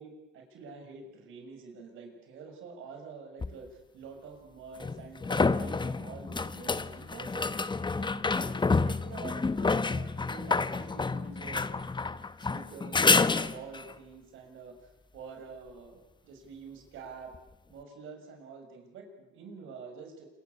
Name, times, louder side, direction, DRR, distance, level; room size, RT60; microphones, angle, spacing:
voice 1, 0.0-11.7 12.4-17.3 17.7-20.3, right 5 dB, 85° right, 4 dB, 6.9 m, -47 dB
sound 1, 3.4-3.5 4.8-13.9 17.3-17.4, left 4 dB, 25° left, 1.1 m, -29 dB
27.5 x 24.0 x 8.5 m, 0.98 s
cardioid pair, 90°, 20 cm